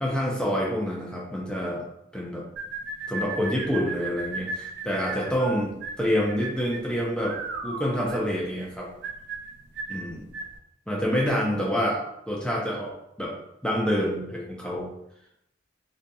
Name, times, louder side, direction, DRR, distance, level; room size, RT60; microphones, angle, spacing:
voice 1, 0.0-1.9 2.1-2.4 3.1-7.4 7.6-8.9 9.9-10.2 10.9-12.0 12.3-12.9 13.2-13.3 13.6-14.9, equal, 5° left, -3 dB, 0.5 m, -27 dB
sound 1, 2.6-10.6, right 3 dB, 55° right, 0.3 m, -36 dB
2.7 x 2.6 x 2.2 m, 0.80 s
head